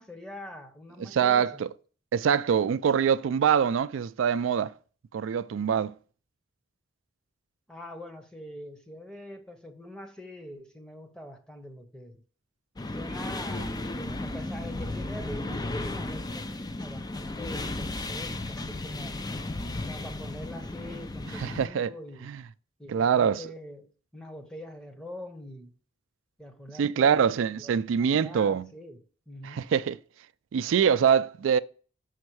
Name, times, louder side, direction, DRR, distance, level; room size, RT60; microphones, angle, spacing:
voice 1, 0.0-1.6 7.7-12.2 12.8-19.5 19.9-22.3 22.8-25.7 26.4-29.0 29.3-29.6, equal, 5° left, 0.8 m, -44 dB
voice 2, 1.0-1.7 2.1-4.7 5.1-5.9 21.3-21.9 22.2-22.4 22.9-23.4 26.8-28.7 29.4-30.0 30.5-31.6, right 7 dB, 85° right, 0.3 m, -24 dB
sound 1, 12.8-21.7, left 2 dB, 20° left, 0.4 m, -34 dB
6.4 x 5.2 x 4.7 m
head